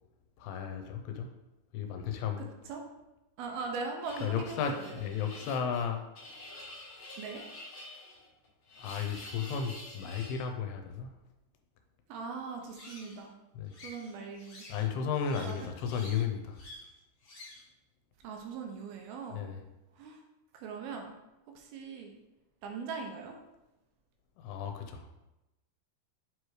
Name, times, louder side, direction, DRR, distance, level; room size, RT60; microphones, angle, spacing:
voice 1, 0.4-1.3 1.7-2.5 4.2-6.0 8.8-11.1 13.6-13.8 14.7-16.6 19.3-19.6 24.4-25.1, left 7 dB, 85° left, 5 dB, 2.7 m, -34 dB
voice 2, 2.4-2.8 3.4-5.0 7.2-7.4 12.1-13.4 13.8-14.7 15.4-15.7 18.2-19.5 19.9-20.2 20.5-21.2 21.6-22.2 22.6-23.4, right 4 dB, 80° right, 2 dB, 2.5 m, -40 dB
sound 1, 4.0-10.5 12.6-13.2 13.7-14.9 15.1-16.2 16.5-16.9 17.2-17.7, left 2 dB, 60° left, 1.6 m, -49 dB
7.5 x 4.8 x 3.2 m, 0.96 s
omnidirectional pair, 4.7 m